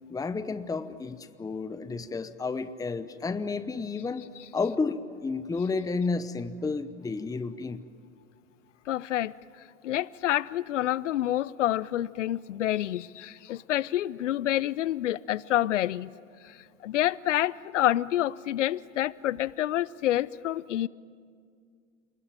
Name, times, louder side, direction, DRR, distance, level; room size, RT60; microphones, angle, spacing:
voice 1, 0.1-7.8, left 4 dB, 10° left, 0.9 m, -31 dB
voice 2, 8.9-9.3 9.8-16.1 16.4-16.6 16.8-20.9, left 13 dB, 80° left, 0.7 m, -28 dB
29.0 x 20.5 x 9.0 m
hypercardioid pair, 95°, 35 cm